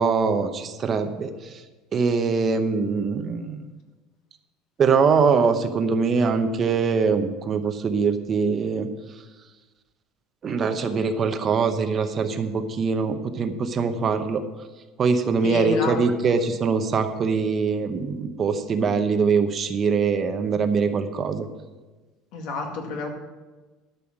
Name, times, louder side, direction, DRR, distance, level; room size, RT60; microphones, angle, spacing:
voice 1, 0.0-1.6 1.9-3.6 4.8-8.9 10.4-14.4 15.0-21.5, right 5 dB, 30° right, 8 dB, 0.8 m, -23 dB
voice 2, 15.4-16.0 22.3-23.1, left 3 dB, 65° left, 2 dB, 2.1 m, -29 dB
12.5 x 5.6 x 7.3 m, 1.2 s
cardioid pair, 145°, 0 cm